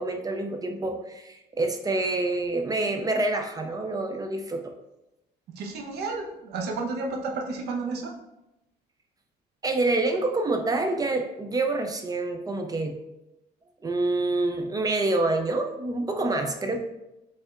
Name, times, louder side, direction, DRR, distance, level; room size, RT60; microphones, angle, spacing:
voice 1, 0.0-4.7 9.6-13.0 13.8-16.8, right 2 dB, 20° right, 4 dB, 0.5 m, -27 dB
voice 2, 5.6-8.1, right 3 dB, 75° right, 1 dB, 0.8 m, -31 dB
5.4 x 3.4 x 2.4 m, 0.91 s
cardioid pair, 110°, 17 cm